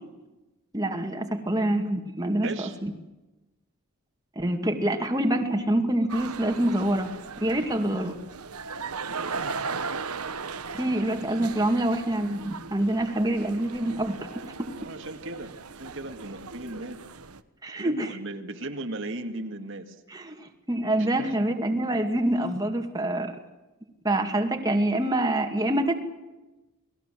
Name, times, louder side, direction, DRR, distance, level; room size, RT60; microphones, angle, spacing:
voice 1, 0.7-2.9 4.4-7.1 7.4-8.2 10.8-14.2 17.6-18.2 20.1-23.3 24.0-25.9, right 1 dB, 15° right, 3 dB, 2.4 m, -26 dB
voice 2, 2.4-2.8 9.1-9.4 14.8-17.0 17.8-20.0 21.0-21.3, right 2 dB, 55° right, 5 dB, 2.2 m, -37 dB
sound 1, 6.1-17.4, right 5 dB, 85° right, 1.4 m, -37 dB
30.0 x 20.5 x 7.7 m, 1.1 s
head